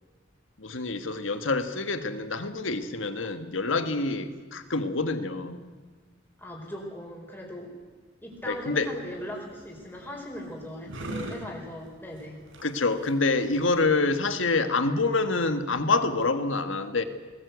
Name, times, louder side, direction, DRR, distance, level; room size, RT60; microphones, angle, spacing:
voice 1, 0.6-5.6 8.5-8.9 12.6-17.0, left 3 dB, 80° left, 9 dB, 1.6 m, -26 dB
voice 2, 6.4-7.7 8.2-12.4, left 1 dB, 10° left, -1 dB, 4.6 m, -39 dB
sound 1, 8.3-14.4, right 1 dB, 75° right, 3.7 m, -43 dB
20.5 x 19.5 x 8.1 m, 1.4 s
head